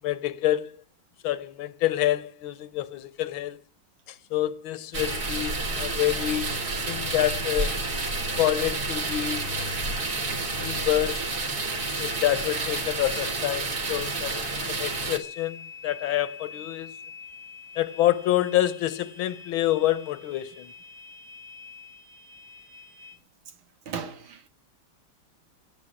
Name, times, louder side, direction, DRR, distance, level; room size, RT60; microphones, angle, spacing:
voice 1, 0.0-0.7 1.2-3.6 4.1-6.6 6.9-7.7 8.4-9.6 10.6-11.3 12.0-16.9 17.8-20.7, left 14 dB, 85° left, 1.7 m, -27 dB
sound 1, 4.9-15.2, right 3 dB, 50° right, 2.6 m, -30 dB
sound 2, 4.9-23.1, left 4 dB, 70° right, 5.9 m, -45 dB
voice 2, 23.9-24.5, right 6 dB, 90° right, 2.4 m, -36 dB
17.5 x 7.2 x 10.0 m
omnidirectional pair, 2.2 m